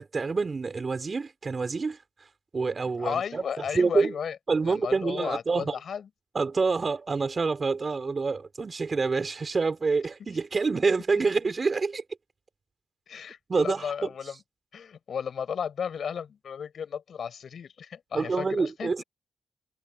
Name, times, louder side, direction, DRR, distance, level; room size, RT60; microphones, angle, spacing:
voice 1, 0.0-2.0 2.5-4.1 4.5-5.8 6.3-12.0 13.5-13.9 18.1-19.0, right 4 dB, 40° right, 4.5 m, -27 dB
voice 2, 2.9-4.4 4.6-6.1 13.1-14.4 14.7-19.0, left 7 dB, 65° left, 7.1 m, -34 dB
supercardioid pair, 50°, 0 cm